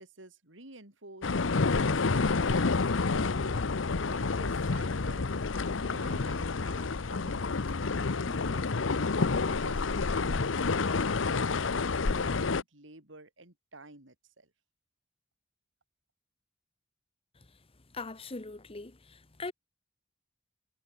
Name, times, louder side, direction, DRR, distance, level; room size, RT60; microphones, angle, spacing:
voice 1, 0.0-3.7 4.1-5.3 5.8-8.7 9.2-11.0 11.3-14.5, right 2 dB, 80° right, 5.7 m, -51 dB
sound 1, 1.2-12.6, left 4 dB, 85° left, 0.8 m, -29 dB
voice 2, 17.9-19.5, left 3 dB, 30° left, 1.1 m, -41 dB
head